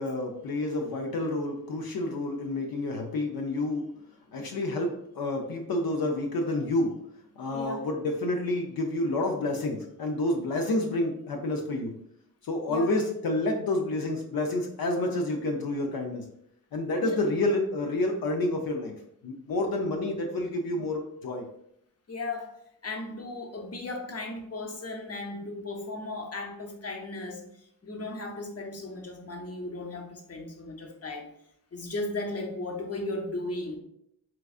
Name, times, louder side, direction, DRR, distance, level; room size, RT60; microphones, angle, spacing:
voice 1, 0.0-3.9 4.3-6.9 7.4-11.9 12.4-16.2 16.7-19.0 19.2-21.4, left 2 dB, 80° left, 2 dB, 0.6 m, -29 dB
voice 2, 22.1-22.5 22.8-31.3 31.7-33.8, left 2 dB, 40° left, 2 dB, 0.7 m, -36 dB
4.6 x 2.4 x 2.4 m, 0.73 s
wide cardioid pair, 70°, 36 cm